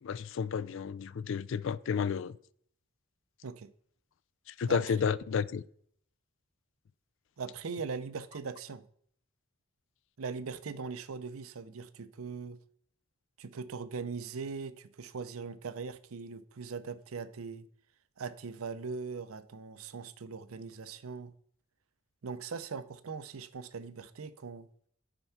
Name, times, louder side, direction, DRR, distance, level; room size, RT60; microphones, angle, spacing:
voice 1, 0.0-2.3 4.6-5.6, left 6 dB, 60° left, 0.4 m, -31 dB
voice 2, 7.4-8.9 10.2-12.6 13.4-17.6 18.2-21.3 22.2-24.7, right 5 dB, 85° right, 0.6 m, -40 dB
8.9 x 4.6 x 5.7 m
head